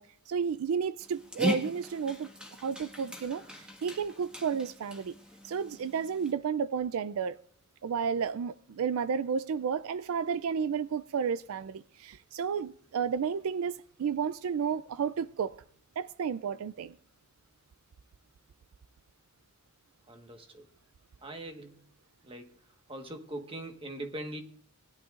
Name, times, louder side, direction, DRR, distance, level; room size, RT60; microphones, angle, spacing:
voice 1, 0.0-2.3 2.6-5.1 5.4-7.4 7.8-15.5 16.0-17.0, right 6 dB, 75° right, 0.4 m, -32 dB
Dog, 1.0-6.3, equal, 5° right, 1.6 m, -39 dB
voice 2, 20.1-20.6 21.2-21.8 22.2-22.5 22.9-24.4, right 1 dB, 25° right, 1.3 m, -41 dB
20.0 x 11.5 x 2.5 m
head